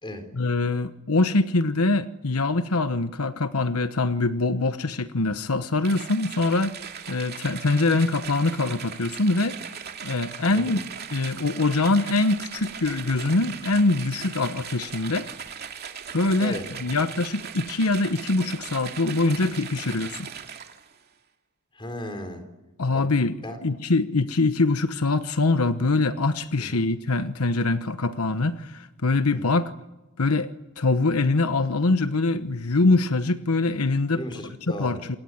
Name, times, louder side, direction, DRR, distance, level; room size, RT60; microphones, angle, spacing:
voice 1, 0.3-6.8 7.1-10.8 11.1-15.3 16.1-20.3 22.8-29.7 30.2-30.5 30.8-34.2 34.7-35.2, left 3 dB, 80° left, 10 dB, 1.1 m, -24 dB
sound 1, 5.8-20.9, right 7 dB, 45° right, 2.5 m, -38 dB
voice 2, 21.7-22.4 22.9-23.1 23.4-23.6 26.7-26.8 29.3-29.6 34.1-35.0, left 1 dB, 20° left, 7 dB, 4.2 m, -35 dB
28.0 x 22.5 x 9.3 m, 1.1 s
head